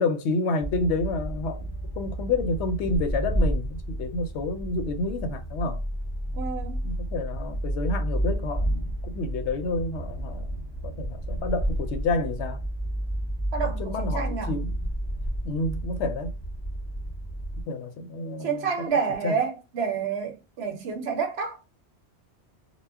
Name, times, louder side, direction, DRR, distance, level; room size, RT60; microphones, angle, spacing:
voice 1, 0.0-5.8 6.8-12.6 13.8-14.7 15.4-16.3 17.7-18.7 19.2-19.4, left 3 dB, 90° left, 0.9 m, -29 dB
sound 1, 0.6-17.6, right 1 dB, 25° left, 0.7 m, -31 dB
voice 2, 6.3-6.9 13.5-14.6 18.4-21.6, right 6 dB, 75° right, 0.8 m, -29 dB
2.2 x 2.0 x 3.4 m
omnidirectional pair, 1.1 m